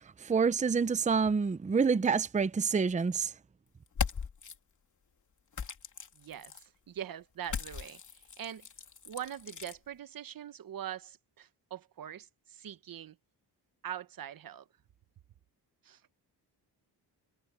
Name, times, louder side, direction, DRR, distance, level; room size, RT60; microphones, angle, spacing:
voice 1, 0.0-3.3, right 5 dB, 20° right, 0.6 m, -28 dB
sound 1, 3.9-4.5 5.5-6.6 7.4-9.8, left 6 dB, 45° left, 3.1 m, -38 dB
voice 2, 6.2-8.7 9.0-13.2 13.8-14.6 15.8-16.0, right 10 dB, 55° right, 1.1 m, -43 dB
cardioid pair, 120°, 40 cm